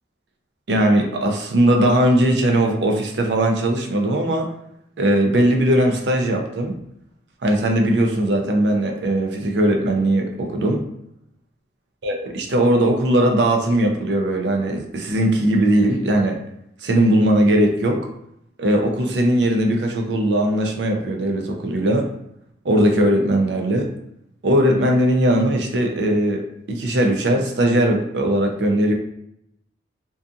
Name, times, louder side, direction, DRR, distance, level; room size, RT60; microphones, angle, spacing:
voice 1, 0.7-4.5 5.0-6.8 7.4-10.9 12.0-16.4 16.8-18.0 18.6-22.1 22.6-23.9 24.4-28.9, right 1 dB, 80° right, 2 dB, 0.5 m, -19 dB
2.6 x 2.3 x 2.6 m, 0.76 s
head